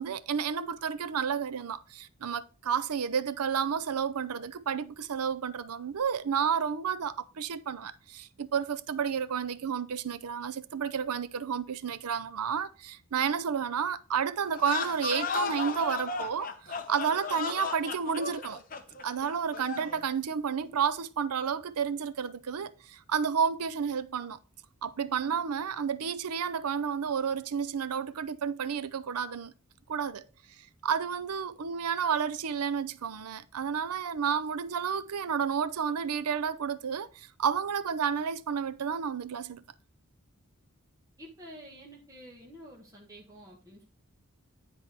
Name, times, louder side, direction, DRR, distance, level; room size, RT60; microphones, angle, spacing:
voice 1, 0.0-18.6 19.0-24.4 24.8-29.5 29.9-30.2 30.6-39.6, right 7 dB, 90° right, 0.5 m, -31 dB
sound 1, 14.5-20.0, left 5 dB, 35° left, 0.8 m, -35 dB
voice 2, 41.2-43.8, equal, 15° right, 1.6 m, -49 dB
9.8 x 4.3 x 4.5 m
head